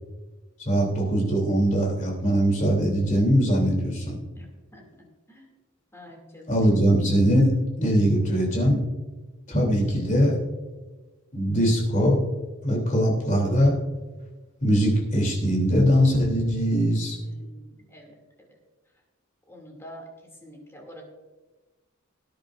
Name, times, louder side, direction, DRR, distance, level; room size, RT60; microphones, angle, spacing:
voice 1, 0.6-4.1 6.5-7.5 7.8-8.8 9.5-10.4 11.3-12.2 12.6-13.7 14.6-17.2, equal, 35° left, -1 dB, 3.1 m, -21 dB
voice 2, 4.4-5.5 5.9-6.8 17.2-18.5 19.5-20.1 20.4-21.0, equal, 10° left, 0 dB, 2.6 m, -47 dB
18.5 x 10.0 x 2.6 m, 1.2 s
head